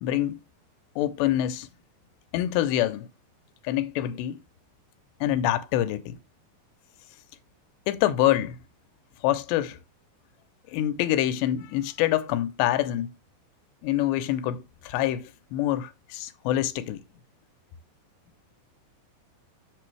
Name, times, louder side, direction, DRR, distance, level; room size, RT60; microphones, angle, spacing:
voice 1, 0.0-0.4 1.0-1.7 2.3-3.1 3.6-4.4 5.2-6.2 7.9-8.6 9.2-9.8 10.7-13.1 13.8-17.0, left 13 dB, 85° left, 2.9 m, -26 dB
8.3 x 6.8 x 3.2 m
omnidirectional pair, 4.9 m